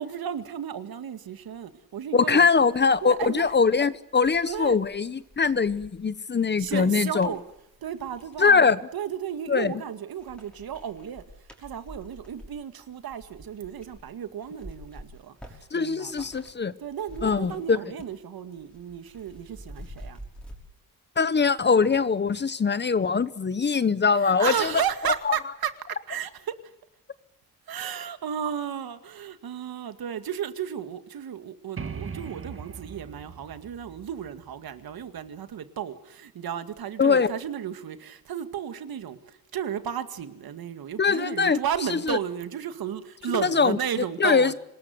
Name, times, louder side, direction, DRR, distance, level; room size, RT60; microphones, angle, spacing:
voice 1, 0.0-2.5 3.0-3.4 4.5-4.8 6.6-7.4 7.8-11.2 11.6-16.3 16.8-20.2 24.1-25.7 26.1-26.5 27.7-44.6, right 9 dB, 80° right, 2.1 m, -33 dB
voice 2, 2.1-7.3 8.4-8.8 9.5-9.7 15.7-16.7 17.2-17.8 21.2-24.7 25.3-25.4 37.0-37.3 41.0-41.6 41.9-42.2 43.3-43.8 44.2-44.5, left 5 dB, 30° left, 1.0 m, -22 dB
sound 1, 2.5-8.6 9.2-9.8 10.1-16.6 16.8-18.2 18.5-20.6, equal, 5° left, 5.8 m, -48 dB
sound 2, 31.8-35.4, right 6 dB, 35° right, 1.9 m, -40 dB
26.0 x 20.5 x 7.9 m
wide cardioid pair, 155°, 36 cm